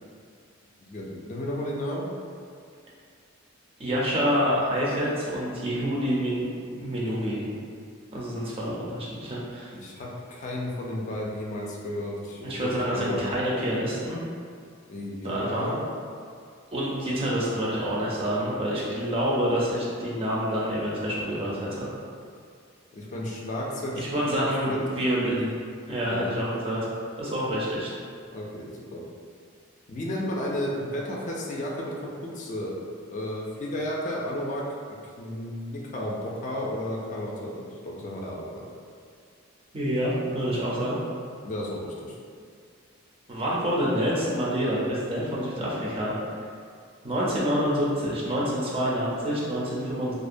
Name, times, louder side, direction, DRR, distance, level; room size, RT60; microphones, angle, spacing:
voice 1, 0.8-2.1 9.7-13.3 14.9-15.8 22.9-24.8 25.1-25.6 26.1-26.3 28.3-29.0 29.9-32.8 33.1-34.6 35.2-38.6 41.4-42.2, left 1 dB, 35° left, -2 dB, 0.3 m, -33 dB
voice 2, 3.8-7.5 8.1-9.7 12.4-14.2 15.2-15.8 16.7-21.9 24.0-25.3 25.9-26.8 27.2-27.9 39.7-41.0 43.3-46.1 47.0-50.1, equal, 30° right, -6 dB, 0.5 m, -27 dB
2.4 x 2.0 x 2.5 m, 2.2 s
head